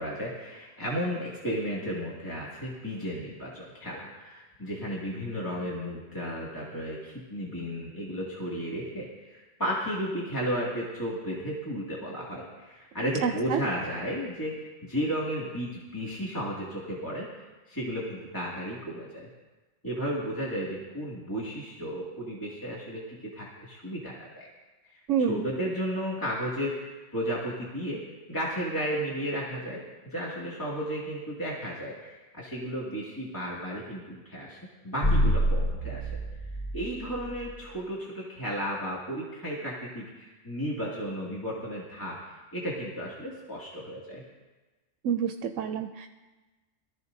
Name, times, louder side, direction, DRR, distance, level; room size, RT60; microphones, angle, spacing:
voice 1, 0.0-17.3 17.7-19.3 19.8-24.5 24.9-28.0 28.3-34.6 34.8-36.0 36.7-44.2, equal, 15° left, -6 dB, 2.2 m, -34 dB
voice 2, 13.2-13.6 25.1-25.5 45.0-46.1, right 7 dB, 90° right, 6 dB, 1.0 m, -28 dB
sound 1, 35.0-37.5, equal, 35° left, 1.0 m, -27 dB
23.0 x 14.0 x 2.7 m, 1.2 s
omnidirectional pair, 1.3 m